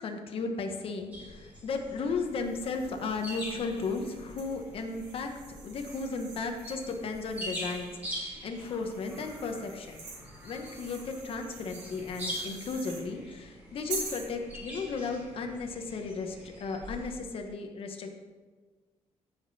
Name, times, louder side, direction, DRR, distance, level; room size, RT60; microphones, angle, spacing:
voice 1, 0.0-5.3 5.6-10.1 10.4-18.1, left 4 dB, 50° left, 4 dB, 1.2 m, -35 dB
sound 1, 1.1-17.1, equal, 15° right, 2.4 m, -44 dB
sound 2, 2.4-8.0 8.6-13.1 13.9-14.3, right 4 dB, 85° right, 2.5 m, -46 dB
14.5 x 5.3 x 4.2 m, 1.4 s
cardioid pair, 165°, 12 cm